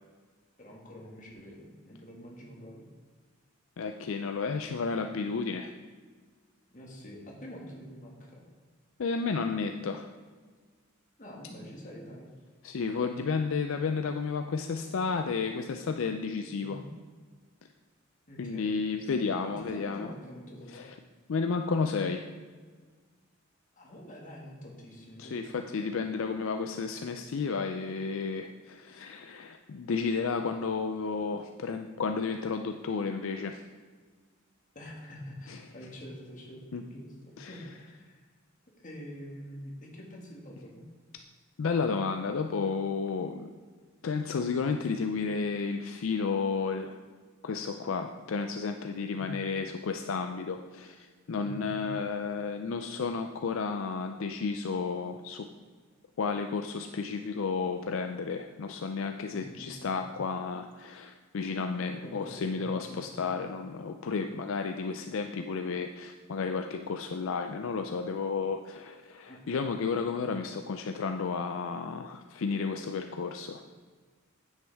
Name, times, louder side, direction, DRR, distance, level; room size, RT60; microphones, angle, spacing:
voice 1, 0.6-2.8 6.7-8.4 11.2-12.3 16.6-16.9 18.3-18.7 19.4-20.8 23.8-25.5 34.8-38.2 38.8-40.8 49.1-49.3 51.4-52.0 59.3-60.2 62.0-63.3 69.2-69.4, equal, 40° left, -2 dB, 1.9 m, -46 dB
voice 2, 3.8-5.7 9.0-10.1 12.6-16.8 18.4-20.1 20.7-21.0 21.3-22.3 25.2-33.7 35.5-35.6 36.7-36.8 37.4-37.6 41.6-43.5 44.0-47.0 47.4-55.5 56.2-73.6, left 5 dB, 70° left, 6 dB, 0.4 m, -32 dB
9.4 x 8.1 x 3.5 m, 1.5 s
head